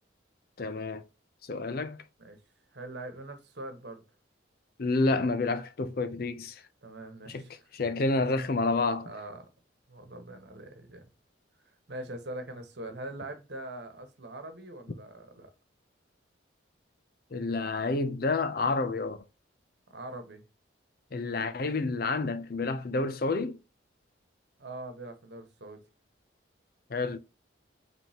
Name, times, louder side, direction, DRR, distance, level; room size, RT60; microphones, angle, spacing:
voice 1, 0.6-1.0 1.4-2.0 4.8-6.6 7.3-7.4 7.7-9.1 17.3-19.2 21.1-23.6 26.9-27.2, left 3 dB, 50° left, 0.5 m, -29 dB
voice 2, 2.7-4.0 6.8-7.7 9.0-9.5 9.9-11.1 11.6-15.5 19.9-20.4 24.6-25.8, right 1 dB, 60° right, 1.3 m, -42 dB
5.3 x 3.5 x 2.8 m
head